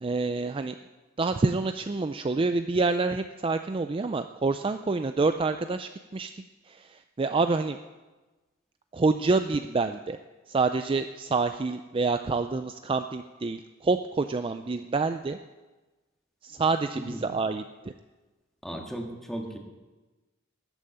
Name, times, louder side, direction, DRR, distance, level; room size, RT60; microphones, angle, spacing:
voice 1, 0.0-0.8 1.2-6.3 6.7-7.8 8.9-10.2 10.5-15.4 16.4-17.6, right 3 dB, 25° right, 9 dB, 0.4 m, -27 dB
voice 2, 18.6-19.6, right 1 dB, ahead, 2 dB, 1.7 m, -36 dB
13.5 x 9.1 x 8.5 m, 1.2 s
head